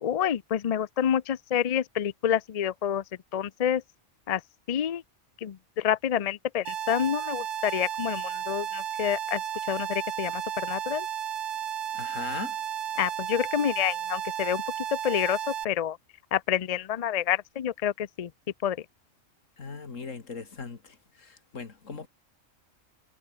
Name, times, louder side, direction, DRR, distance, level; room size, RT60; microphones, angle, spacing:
voice 1, 0.0-3.0 3.3-3.8 4.3-4.4 4.7-5.0 5.4-9.4 9.7-11.1 13.0-14.6 14.9-16.0 16.3-18.3 18.6-18.8, left 10 dB, 55° left, 0.4 m, -28 dB
sound 1, 6.7-15.7, right 9 dB, 65° right, 1.2 m, -33 dB
voice 2, 11.9-12.6 19.6-22.1, left 4 dB, 70° left, 2.6 m, -39 dB
omnidirectional pair, 1.4 m